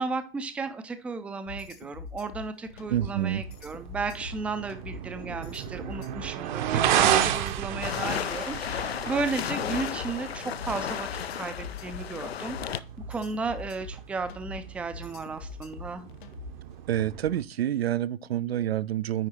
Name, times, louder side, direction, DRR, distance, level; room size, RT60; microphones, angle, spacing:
voice 1, 0.0-16.1, right 4 dB, 5° right, 0.4 m, -34 dB
sound 1, 1.5-16.7, left 4 dB, 55° left, 0.8 m, -43 dB
sound 2, 2.8-17.4, right 10 dB, 50° right, 0.8 m, -33 dB
voice 2, 2.9-3.4 16.9-19.3, right 11 dB, 80° right, 0.5 m, -28 dB
sound 3, 7.8-12.8, left 9 dB, 80° left, 0.5 m, -34 dB
10.0 x 3.6 x 4.2 m
hypercardioid pair, 110°, 30 cm